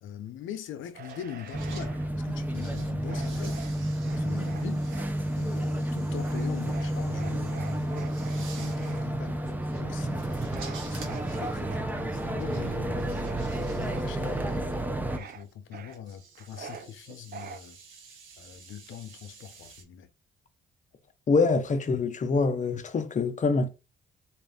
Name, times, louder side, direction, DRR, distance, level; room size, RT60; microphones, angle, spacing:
voice 1, 0.0-3.6 4.1-4.9 5.3-9.4 9.7-17.8 18.4-20.1, left 9 dB, 80° left, 0.7 m, -42 dB
sound 1, 0.9-2.1 3.0-5.1 6.2-9.1 10.5-14.0 15.1-15.4 15.7-16.9 17.3-17.6, right 7 dB, 55° right, 0.6 m, -46 dB
sound 2, 1.0-1.9 2.3-19.8, right 4 dB, 80° right, 1.6 m, -51 dB
sound 3, 1.5-15.2, right 1 dB, 10° right, 0.6 m, -31 dB
voice 2, 21.3-23.7, left 4 dB, 40° left, 0.7 m, -25 dB
4.3 x 2.5 x 3.6 m
cardioid pair, 90°, 20 cm